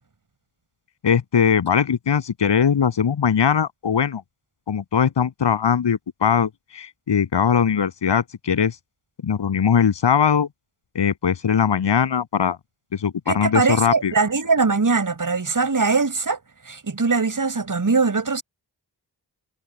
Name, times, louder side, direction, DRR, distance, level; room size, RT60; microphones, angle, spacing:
voice 1, 1.0-4.2 4.7-8.7 9.2-10.5 10.9-12.6 12.9-14.1, left 7 dB, 90° left, 7.9 m, -20 dB
voice 2, 13.3-16.4 16.7-18.4, right 4 dB, 50° right, 7.5 m, -21 dB
cardioid pair, 60°, 41 cm